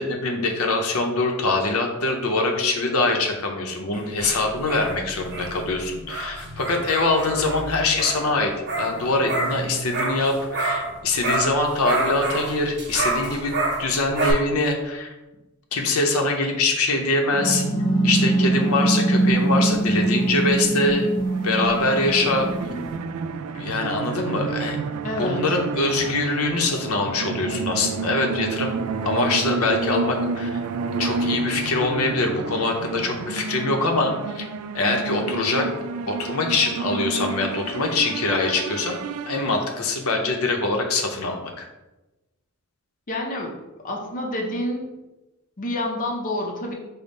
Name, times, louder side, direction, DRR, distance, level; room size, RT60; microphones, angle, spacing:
voice 1, 0.0-15.1 15.7-17.6 18.0-21.2 21.4-22.5 23.5-24.8 25.2-28.8 29.0-30.6 31.0-34.5 34.7-35.7 36.1-39.0 39.3-41.6, left 2 dB, 85° left, 2 dB, 0.6 m, -23 dB
sound 1, 3.9-11.0 11.2-14.3, right 2 dB, 50° right, 0.8 m, -28 dB
sound 2, 17.3-23.0, right 2 dB, 25° left, 1.1 m, -23 dB
sound 3, 21.2-40.0, right 4 dB, 85° right, 0.3 m, -30 dB
voice 2, 25.0-25.4 43.1-43.6 43.8-44.9 45.6-46.7, left 1 dB, 40° left, 0 dB, 0.5 m, -28 dB
5.1 x 2.1 x 4.0 m, 1.0 s
head